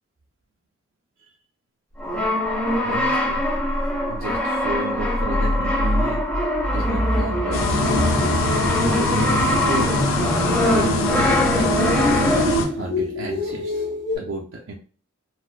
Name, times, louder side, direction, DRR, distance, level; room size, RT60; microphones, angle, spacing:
Brass instrument, 2.0-12.8, left 1 dB, 5° left, 0.3 m, -23 dB
sound 1, 2.1-2.2 2.6-2.8 3.0-3.1 3.3-14.2, left 1 dB, 45° left, 1.2 m, -27 dB
voice 1, 2.8-3.5 4.1-6.2 6.7-8.4 8.9-9.9 10.6-11.0 11.6-11.8 12.8-13.9 14.1-14.7, right 2 dB, 70° right, -3 dB, 0.5 m, -31 dB
sound 2, 7.5-12.7, left 2 dB, 70° left, 0.5 m, -23 dB
4.1 x 2.1 x 2.4 m, 0.41 s
head